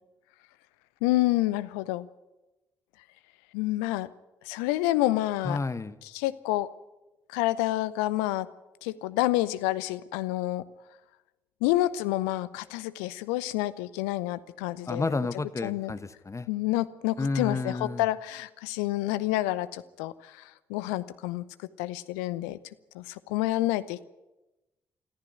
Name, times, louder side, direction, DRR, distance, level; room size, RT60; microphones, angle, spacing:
voice 1, 1.0-2.1 3.5-4.1 4.4-5.6 6.0-6.7 7.3-8.5 8.8-10.6 11.6-15.1 15.6-15.9 16.5-22.6 22.9-24.0, left 16 dB, 75° left, 16 dB, 0.7 m, -28 dB
voice 2, 5.4-6.0 14.9-16.5 17.2-18.1, left 3 dB, 25° left, 13 dB, 1.3 m, -31 dB
25.0 x 14.5 x 9.3 m, 1.0 s
figure-of-eight pair, 40°, 12 cm